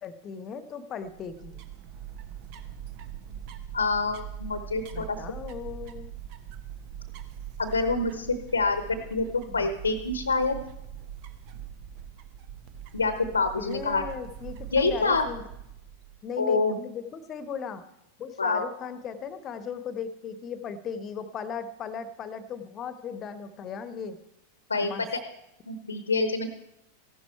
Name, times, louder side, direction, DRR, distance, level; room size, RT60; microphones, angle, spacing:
voice 1, 0.0-1.6 4.9-6.1 9.5-9.7 13.6-15.4 16.2-17.8 18.2-24.2 24.8-25.1, left 6 dB, 30° left, 12 dB, 1.2 m, -37 dB
sound 1, 1.0-16.3, right 9 dB, 45° right, 1.1 m, -42 dB
voice 2, 3.7-5.2 7.6-10.6 12.9-14.0 14.7-15.3 16.4-16.8 18.4-18.7 24.7-25.2 25.7-26.5, left 3 dB, 75° left, 10 dB, 1.0 m, -26 dB
15.0 x 11.5 x 4.5 m, 0.85 s
figure-of-eight pair, 90°, 0 cm